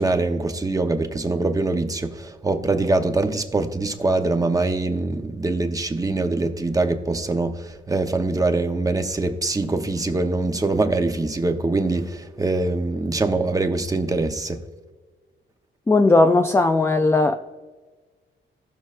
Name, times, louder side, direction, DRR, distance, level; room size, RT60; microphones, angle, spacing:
voice 1, 0.0-14.6, right 2 dB, 15° right, 0.8 m, -23 dB
voice 2, 15.9-17.4, left 2 dB, 10° left, 0.3 m, -17 dB
17.5 x 6.2 x 2.5 m
wide cardioid pair, 130°, 21 cm